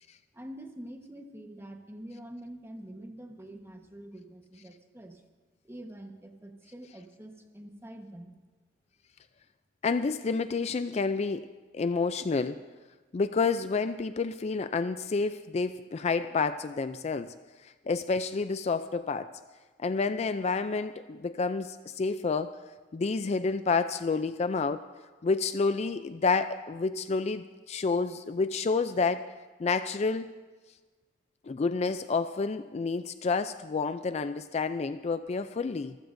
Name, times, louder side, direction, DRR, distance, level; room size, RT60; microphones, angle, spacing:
voice 1, 0.3-5.2 5.6-8.3, right 1 dB, 15° right, 4 dB, 1.2 m, -45 dB
voice 2, 9.8-11.5 11.7-12.7 13.1-17.3 17.6-19.3 19.8-22.6 22.9-24.9 25.2-29.3 29.6-30.3 31.5-36.0, left 4 dB, 35° left, 11 dB, 0.4 m, -29 dB
25.5 x 15.0 x 2.6 m, 1.3 s
head